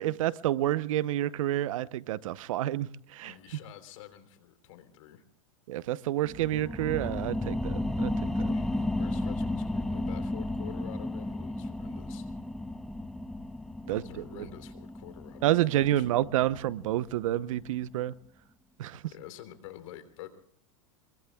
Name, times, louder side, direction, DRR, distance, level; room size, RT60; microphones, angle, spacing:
voice 1, 0.0-3.3 5.7-8.3 13.9-14.5 15.4-18.1 18.8-19.0, right 13 dB, 75° right, 0.8 m, -29 dB
voice 2, 3.2-5.2 8.5-12.3 13.8-16.1 19.1-20.3, left 12 dB, 70° left, 3.4 m, -48 dB
sound 1, 6.2-17.4 17.8-17.9, left 1 dB, ahead, 0.5 m, -34 dB
26.0 x 23.0 x 2.3 m
supercardioid pair, 130°, 17 cm